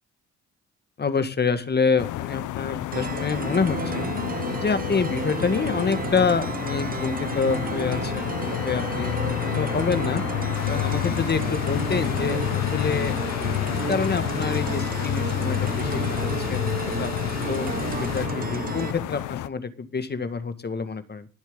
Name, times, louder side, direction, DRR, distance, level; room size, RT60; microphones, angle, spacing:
voice 1, 1.0-4.1 4.6-10.2 10.7-21.3, left 5 dB, 35° left, 11 dB, 1.8 m, -27 dB
sound 1, 2.0-19.5, left 15 dB, 80° left, 0.6 m, -29 dB
sound 2, 2.9-18.9, right 6 dB, 30° right, 0.7 m, -32 dB
sound 3, 10.5-18.3, left 7 dB, 60° left, 2.1 m, -38 dB
19.5 x 7.3 x 3.8 m, 0.31 s
cardioid pair, 90°, 30 cm